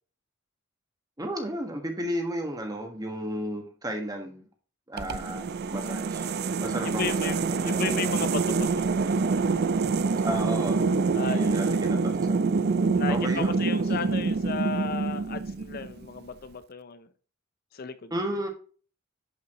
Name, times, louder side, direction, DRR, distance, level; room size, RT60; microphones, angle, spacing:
voice 1, 1.2-4.5 4.9-6.2 6.6-7.7 10.2-10.8 11.2-12.7 13.1-13.6 18.1-18.5, equal, 20° right, 1.5 m, -33 dB
sound 1, 5.0-16.1, right 4 dB, 50° right, 0.4 m, -26 dB
voice 2, 6.8-9.2 11.1-11.7 12.9-17.1 17.7-18.1, left 5 dB, 45° left, 0.5 m, -34 dB
11.0 x 5.5 x 3.0 m
head